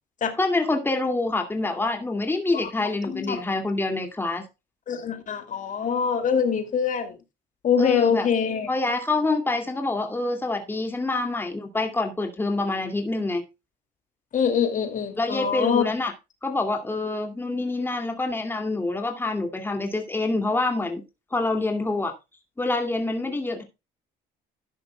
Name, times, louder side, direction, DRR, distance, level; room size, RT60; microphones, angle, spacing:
voice 1, 0.4-4.4 7.8-8.3 8.7-13.4 15.2-16.1 16.4-21.0 21.3-22.1 22.6-23.6, left 2 dB, 10° left, 2.3 m, -26 dB
voice 2, 2.5-3.4 4.9-7.2 7.6-8.7 14.3-15.8, left 7 dB, 50° left, 2.4 m, -24 dB
13.0 x 10.5 x 2.2 m
cardioid pair, 110°, 17 cm